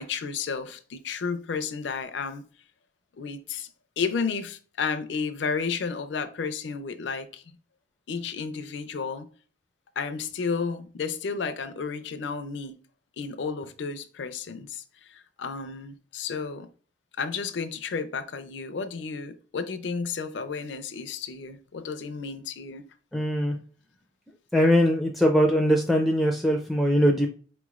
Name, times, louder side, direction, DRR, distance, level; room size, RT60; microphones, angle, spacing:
voice 1, 0.0-2.4 3.2-3.7 4.0-7.4 8.1-9.3 10.0-12.8 13.2-14.8 15.1-16.7 17.2-22.8, left 5 dB, 65° left, 0.4 m, -32 dB
voice 2, 23.1-23.6 24.5-27.3, equal, ahead, 0.4 m, -21 dB
4.5 x 3.0 x 2.4 m
head